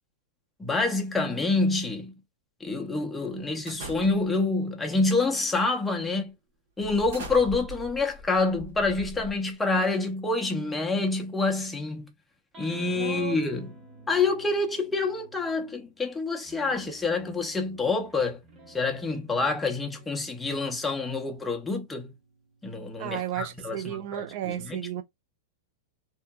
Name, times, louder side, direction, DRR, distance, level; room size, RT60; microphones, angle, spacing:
voice 1, 0.6-2.1 2.6-6.3 6.8-12.1 12.6-13.7 14.1-18.4 18.7-22.1 22.6-24.8, left 3 dB, 10° left, 0.6 m, -27 dB
sound 1, 3.7-4.5 5.3-5.6 6.0-6.1 6.8-9.7, right 1 dB, 80° right, 1.0 m, -41 dB
sound 2, 12.5-15.9 16.4-23.2, right 3 dB, 30° right, 1.1 m, -52 dB
voice 2, 12.9-13.4 23.0-25.0, right 12 dB, 55° right, 0.3 m, -34 dB
2.8 x 2.4 x 2.3 m
hypercardioid pair, 130°, 0 cm